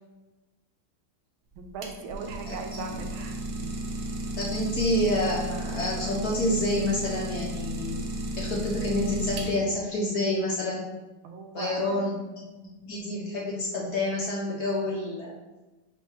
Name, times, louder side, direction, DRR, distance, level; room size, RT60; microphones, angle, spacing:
Idling, 1.5-9.9, right 1 dB, 70° right, 1.2 m, -34 dB
voice 1, 1.6-3.7 11.2-12.0, right 5 dB, 85° right, 4 dB, 1.4 m, -38 dB
voice 2, 2.5-2.9 4.4-8.0 8.4-10.8 11.5-12.1 12.6-15.3, left 1 dB, 70° left, -3 dB, 0.9 m, -28 dB
4.5 x 2.2 x 4.6 m, 1.1 s
omnidirectional pair, 2.2 m